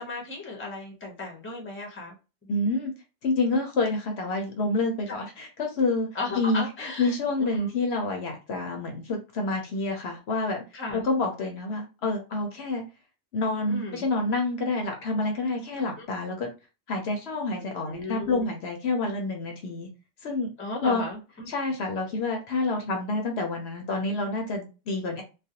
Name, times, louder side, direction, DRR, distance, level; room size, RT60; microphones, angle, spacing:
voice 1, 0.0-2.1 5.1-5.2 6.1-7.1 7.4-7.7 10.7-11.0 13.7-14.0 16.0-16.1 17.6-18.5 20.6-21.5, left 2 dB, 15° left, 0 dB, 0.6 m, -35 dB
voice 2, 2.5-2.9 3.2-6.1 6.3-10.6 10.9-12.8 13.3-16.5 16.9-19.9 20.2-20.5 20.8-21.0 21.5-25.2, left 2 dB, 65° left, 3 dB, 0.8 m, -28 dB
2.4 x 2.2 x 2.7 m, 0.30 s
omnidirectional pair, 1.2 m